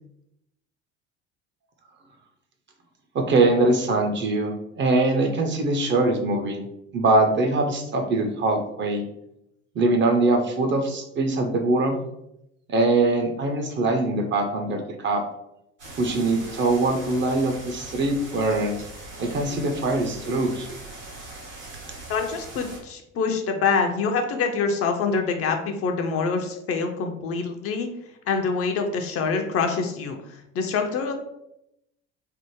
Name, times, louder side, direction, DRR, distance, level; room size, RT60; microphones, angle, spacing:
voice 1, 3.1-6.6 6.9-9.1 9.7-12.0 12.7-15.2 16.0-18.8 19.2-20.7, right 2 dB, 35° right, 4 dB, 0.6 m, -22 dB
sound 1, 15.8-22.8, right 2 dB, 80° right, 1.3 m, -40 dB
voice 2, 22.1-27.9 28.3-30.2 30.5-31.1, left 5 dB, 45° left, 4 dB, 0.5 m, -25 dB
3.4 x 2.0 x 3.0 m, 0.82 s
hypercardioid pair, 65°, 34 cm